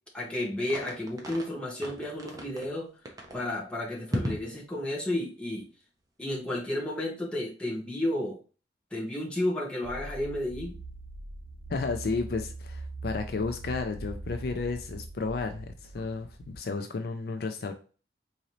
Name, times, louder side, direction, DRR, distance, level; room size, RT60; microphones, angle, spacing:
voice 1, 0.1-2.9 3.3-5.7 6.2-8.4 8.9-10.8 16.0-16.1, left 1 dB, 5° left, -4 dB, 0.9 m, -32 dB
sound 1, 0.7-1.5 1.8-2.7 3.1-3.4 4.1-4.5, equal, 20° right, 0.7 m, -35 dB
sound 2, 9.8-16.6, right 2 dB, 70° right, 0.5 m, -41 dB
voice 2, 11.7-17.7, left 4 dB, 60° left, 7 dB, 0.4 m, -32 dB
3.9 x 2.7 x 3.0 m, 0.37 s
head